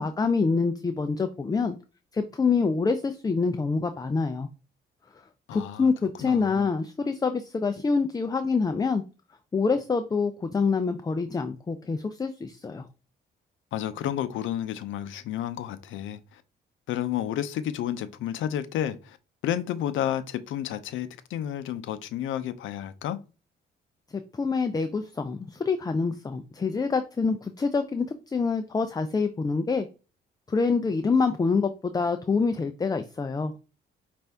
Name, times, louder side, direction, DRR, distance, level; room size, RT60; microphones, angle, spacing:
voice 1, 0.0-1.7 2.1-4.5 5.5-9.0 9.5-12.8 24.1-29.9 30.5-33.5, left 4 dB, 20° left, 0.4 m, -26 dB
voice 2, 5.5-5.9 6.2-6.7 13.7-16.4 16.9-19.2 19.4-23.2, left 11 dB, 75° left, 0.5 m, -31 dB
5.3 x 2.5 x 3.4 m
cardioid pair, 90°, 20 cm